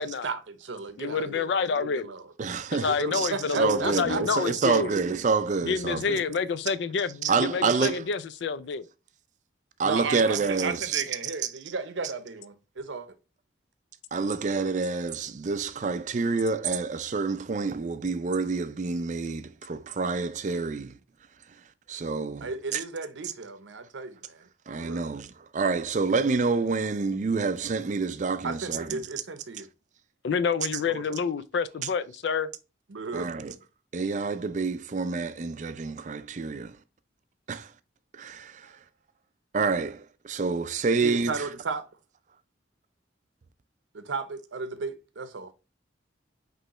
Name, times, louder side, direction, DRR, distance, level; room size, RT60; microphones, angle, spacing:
voice 1, 0.0-2.3 2.9-4.4 9.8-13.1 22.4-24.5 24.8-25.1 28.4-29.7 30.9-31.0 32.9-33.3 38.7-38.8 40.9-41.9 43.9-45.5, right 4 dB, 85° right, 0.7 m, -35 dB
voice 2, 1.0-2.1 2.7-5.0 5.6-8.9 30.2-32.5, left 5 dB, 70° left, 0.4 m, -28 dB
voice 3, 2.4-3.3 3.5-6.2 7.2-8.0 9.8-11.0 14.1-20.9 21.9-22.8 24.7-29.0 33.1-33.5 33.9-36.8 37.5-37.7 38.1-38.7 39.5-41.5, right 4 dB, 40° right, 0.4 m, -28 dB
5.3 x 3.0 x 3.0 m
head